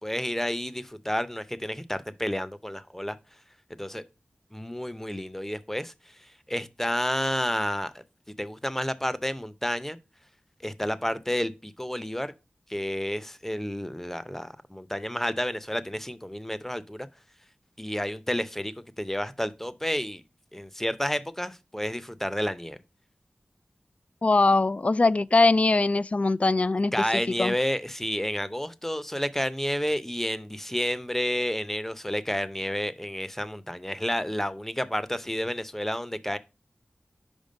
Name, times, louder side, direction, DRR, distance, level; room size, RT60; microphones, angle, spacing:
voice 1, 0.0-3.2 3.8-4.0 4.5-5.9 6.5-8.0 8.4-10.0 10.6-12.3 12.7-17.1 17.8-20.2 20.5-22.8 26.9-36.4, equal, 10° left, 0.6 m, -30 dB
voice 2, 24.2-26.9 27.4-27.5, left 3 dB, 40° left, 0.3 m, -21 dB
5.3 x 4.8 x 5.2 m
cardioid pair, 40°, 3 cm